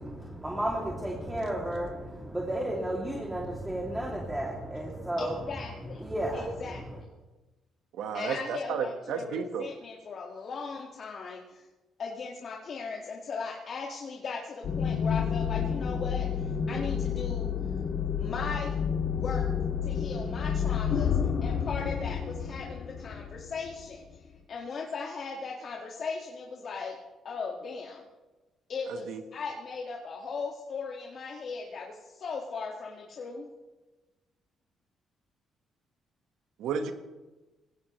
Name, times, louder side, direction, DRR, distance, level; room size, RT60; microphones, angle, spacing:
voice 1, 0.0-5.5 5.8-6.9, right 1 dB, 10° right, -3 dB, 2.7 m, -33 dB
voice 2, 5.2-6.0 6.3-7.0 8.1-11.7 12.0-17.5 18.2-18.7 19.1-19.5 19.8-27.0 27.2-28.0 28.7-33.5, left 4 dB, 55° left, -2 dB, 1.9 m, -38 dB
voice 3, 7.9-9.7 28.9-29.2 36.6-36.9, right 7 dB, 85° right, 7 dB, 1.4 m, -33 dB
sound 1, 14.6-23.9, left 7 dB, 70° left, 2.1 m, -30 dB
20.5 x 17.0 x 3.2 m, 1.2 s
cardioid pair, 90°, 0 cm